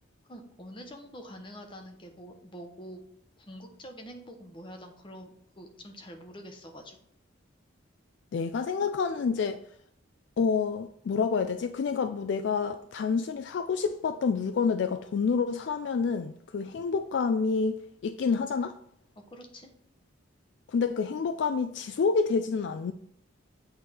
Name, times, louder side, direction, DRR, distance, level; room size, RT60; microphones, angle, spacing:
voice 1, 0.3-3.0 3.4-7.0 19.1-19.7, equal, 25° left, 0.9 m, -46 dB
voice 2, 8.3-9.6 10.4-18.8 20.7-22.9, left 5 dB, 60° left, 0.3 m, -28 dB
8.1 x 3.4 x 4.2 m
head